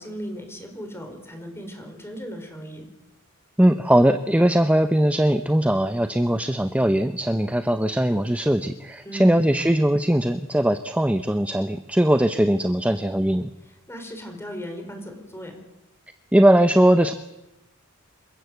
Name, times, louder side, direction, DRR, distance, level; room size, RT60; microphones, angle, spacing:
voice 1, 0.0-2.9 9.0-9.4 13.6-15.6, equal, 10° left, 4 dB, 4.9 m, -37 dB
voice 2, 3.6-13.5 16.3-17.1, right 1 dB, 5° right, 9 dB, 0.7 m, -20 dB
27.5 x 15.5 x 8.0 m, 0.98 s
head